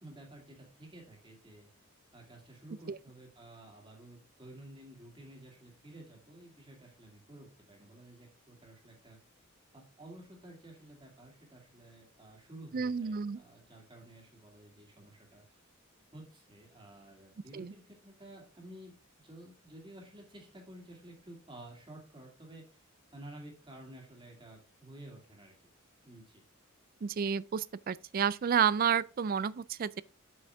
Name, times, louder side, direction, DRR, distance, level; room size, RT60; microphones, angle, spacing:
voice 1, 0.0-1.7 2.1-9.2 9.7-15.6 16.1-25.5 26.0-26.4, right 1 dB, 20° right, 2.4 m, -52 dB
voice 2, 12.7-13.4 17.5-17.7 27.0-30.0, right 7 dB, 40° right, 0.3 m, -30 dB
7.7 x 6.3 x 3.5 m
head